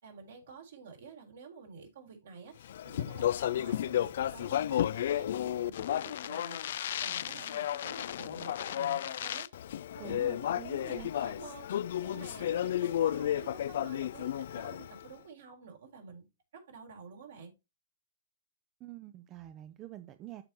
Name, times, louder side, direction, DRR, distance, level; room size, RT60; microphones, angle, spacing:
voice 1, 0.0-6.7 7.0-9.6 9.9-10.5 10.8-16.3 16.5-17.5, right 5 dB, 70° right, 3.9 m, -50 dB
Speech, 2.7-15.0, left 11 dB, 60° left, 0.3 m, -33 dB
voice 2, 10.0-11.1 18.8-20.4, right 13 dB, 30° right, 0.6 m, -46 dB
13.0 x 4.5 x 2.9 m
hypercardioid pair, 120°, 0 cm